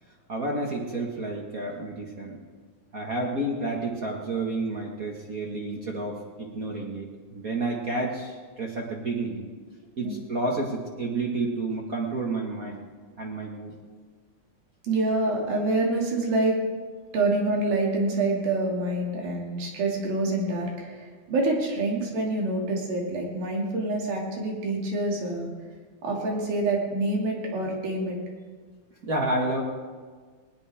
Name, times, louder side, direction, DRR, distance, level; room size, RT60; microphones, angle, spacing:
voice 1, 0.3-2.4 2.9-9.5 10.0-12.8 13.2-13.7 29.0-29.6, right 2 dB, 55° right, -1 dB, 0.9 m, -30 dB
voice 2, 14.8-16.6 17.1-25.5 26.0-28.2, right 2 dB, 70° right, -1 dB, 4.2 m, -26 dB
20.0 x 19.5 x 3.6 m, 1.5 s
omnidirectional pair, 4.4 m